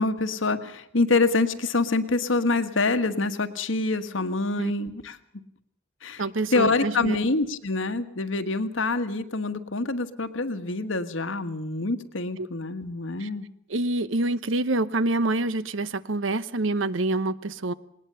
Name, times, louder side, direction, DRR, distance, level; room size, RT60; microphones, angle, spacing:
voice 1, 0.0-5.2 6.0-6.2 6.5-13.5, left 3 dB, 80° left, 9 dB, 1.5 m, -26 dB
voice 2, 6.2-7.2 12.4-12.5 13.2-13.3 13.7-17.7, right 2 dB, 75° right, 16 dB, 0.9 m, -26 dB
20.0 x 20.0 x 6.8 m, 0.73 s
head